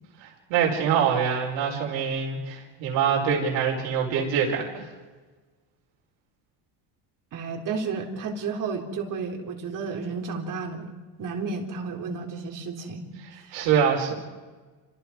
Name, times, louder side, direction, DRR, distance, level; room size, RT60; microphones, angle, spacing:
voice 1, 0.2-4.9 13.5-14.1, right 7 dB, 80° right, -1 dB, 5.2 m, -24 dB
voice 2, 7.3-10.9 11.2-13.1 13.3-13.7, right 4 dB, 45° right, 2 dB, 3.9 m, -32 dB
28.5 x 26.5 x 4.8 m, 1.3 s
cardioid pair, 145°, 44 cm